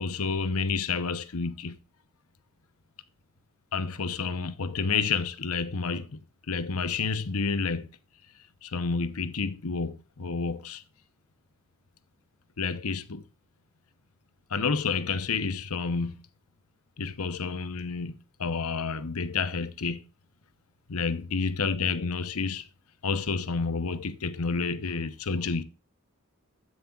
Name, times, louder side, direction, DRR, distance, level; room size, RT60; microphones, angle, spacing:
voice 1, 0.0-1.8 3.7-6.1 6.5-7.9 8.6-10.8 12.6-13.2 14.5-16.2 17.0-18.1 18.4-20.0 20.9-22.7 23.0-25.6, left 4 dB, 80° left, 0.9 m, -29 dB
15.0 x 6.4 x 2.4 m
head